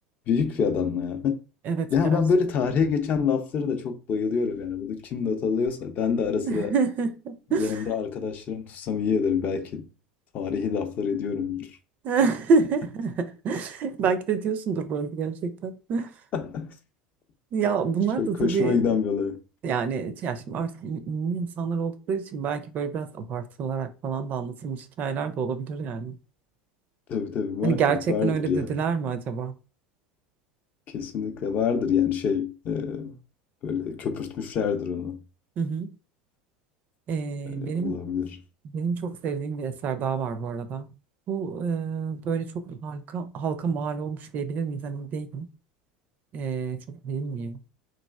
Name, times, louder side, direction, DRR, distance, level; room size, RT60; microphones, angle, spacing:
voice 1, 0.3-1.4 1.9-6.7 7.6-9.9 10.3-11.8 16.3-16.7 18.2-19.4 27.1-28.7 30.9-33.2 33.6-35.2 37.5-38.4, left 6 dB, 40° left, 0.5 m, -26 dB
voice 2, 1.6-2.2 6.4-7.8 12.0-16.1 17.5-18.8 19.6-26.2 27.6-29.5 35.6-35.9 37.1-38.0 38.6-40.9 41.3-45.5 46.3-47.6, right 5 dB, 40° right, 0.4 m, -28 dB
3.0 x 2.4 x 2.2 m
figure-of-eight pair, 75°, 4 cm